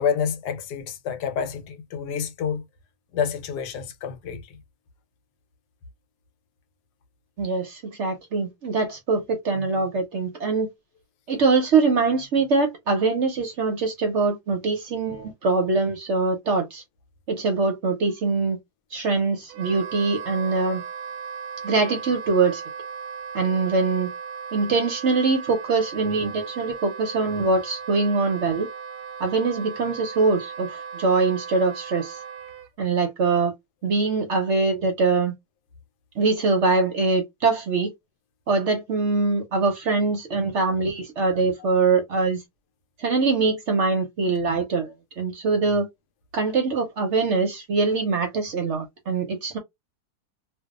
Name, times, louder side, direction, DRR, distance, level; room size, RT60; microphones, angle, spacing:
voice 1, 0.0-2.6 3.1-4.6 41.6-41.7, left 7 dB, 85° left, 1.2 m, -28 dB
voice 2, 7.4-10.7 11.3-16.8 17.3-18.6 18.9-20.8 21.6-22.6 23.3-24.1 24.5-28.7 29.2-32.2 32.8-33.5 33.8-35.3 36.2-37.9 38.5-42.4 43.0-45.9 46.3-49.6, right 4 dB, 60° right, 0.8 m, -23 dB
Wind instrument woodwind instrument, 19.5-32.7, right 6 dB, 90° right, 1.2 m, -37 dB
2.7 x 2.2 x 2.3 m
omnidirectional pair, 1.8 m